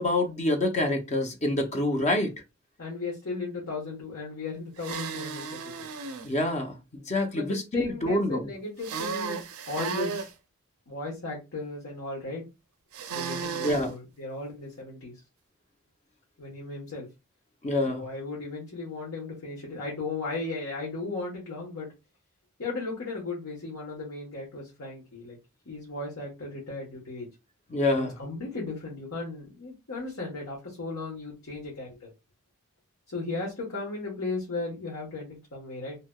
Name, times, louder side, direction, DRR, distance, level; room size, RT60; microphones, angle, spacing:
voice 1, 0.0-2.3 6.2-6.8 7.1-8.5 13.6-13.9 17.6-18.0 27.7-28.2, left 1 dB, 30° left, 0.7 m, -26 dB
voice 2, 2.8-5.9 7.3-10.3 10.9-12.4 13.1-15.1 16.4-17.1 17.8-21.9 22.6-25.4 25.7-27.3 27.9-32.1 33.1-36.0, left 3 dB, 70° left, 1.2 m, -36 dB
sound 1, 4.8-6.3 8.8-10.3 12.9-13.9, right 5 dB, 75° right, 0.5 m, -34 dB
3.2 x 2.8 x 2.3 m
head